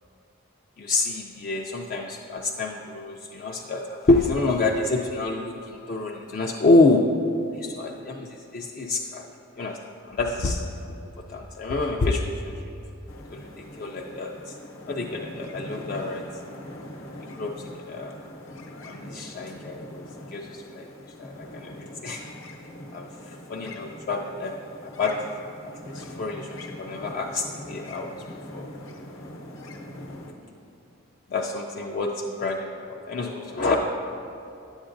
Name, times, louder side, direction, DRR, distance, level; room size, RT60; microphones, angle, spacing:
voice 1, 0.8-7.0 7.5-9.3 9.6-10.6 11.3-12.6 13.3-14.6 14.9-16.2 17.2-18.2 18.8-20.0 20.3-20.9 21.2-21.8 22.0-22.5 22.9-24.6 24.8-25.2 25.9-28.1 28.5-28.6 31.3-33.8, left 3 dB, 40° left, -1 dB, 0.3 m, -27 dB
sound 1, 13.1-30.3, left 1 dB, 65° left, 0.8 m, -42 dB
10.5 x 7.9 x 2.5 m, 2.7 s
head